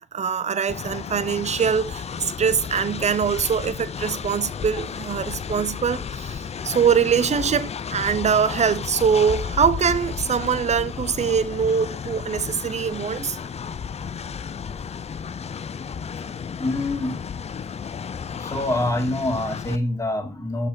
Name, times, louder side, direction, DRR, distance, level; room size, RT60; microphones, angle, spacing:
voice 1, 0.1-13.4, right 6 dB, 35° right, 0.7 m, -23 dB
Train, 0.7-19.8, left 6 dB, 35° left, 0.5 m, -33 dB
voice 2, 16.2-17.2 18.3-20.7, left 1 dB, 15° left, 2.0 m, -26 dB
6.2 x 5.4 x 4.1 m
cardioid pair, 70°, 19 cm